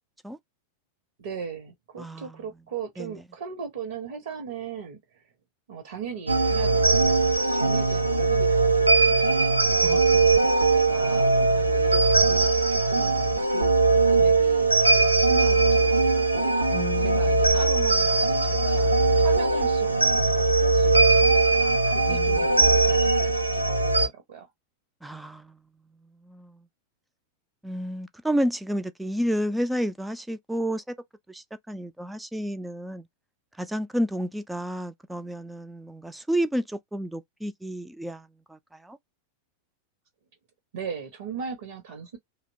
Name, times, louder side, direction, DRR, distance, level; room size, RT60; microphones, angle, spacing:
voice 1, 1.2-5.3 5.7-10.1 10.7-13.7 14.1-24.5 40.7-42.2, right 6 dB, 60° right, 0.8 m, -39 dB
voice 2, 2.0-2.3 3.0-3.1 9.8-10.0 16.7-17.2 22.1-22.4 25.0-25.5 26.2-26.6 27.6-30.8 31.3-33.0 33.6-38.6 38.8-39.0, equal, 5° right, 0.3 m, -30 dB
sound 1, 6.3-24.1, right 3 dB, 85° right, 0.4 m, -20 dB
2.8 x 2.0 x 2.6 m
figure-of-eight pair, 90°, 0 cm